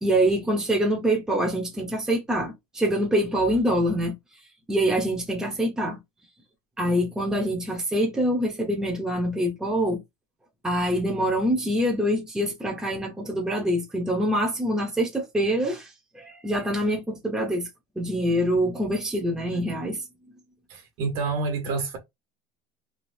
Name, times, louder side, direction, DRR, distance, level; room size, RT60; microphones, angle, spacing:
voice 1, 0.0-4.2 4.7-6.0 6.8-10.0 10.6-17.7 18.0-20.0, equal, 5° right, 0.8 m, -25 dB
voice 2, 20.7-22.0, right 4 dB, 55° right, 1.4 m, -28 dB
3.4 x 2.7 x 2.7 m
supercardioid pair, 150°, 11 cm